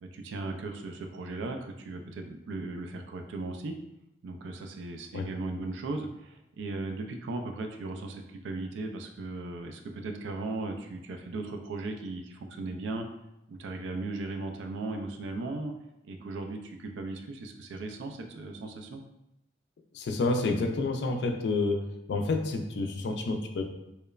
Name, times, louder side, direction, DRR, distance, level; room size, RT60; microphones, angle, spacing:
voice 1, 0.0-3.8 4.2-13.1 13.5-15.7 16.0-19.0, right 2 dB, 85° right, 4 dB, 0.3 m, -37 dB
voice 2, 19.9-21.8 22.1-23.6, left 3 dB, 70° left, 4 dB, 0.3 m, -29 dB
3.0 x 2.0 x 2.3 m, 0.88 s
head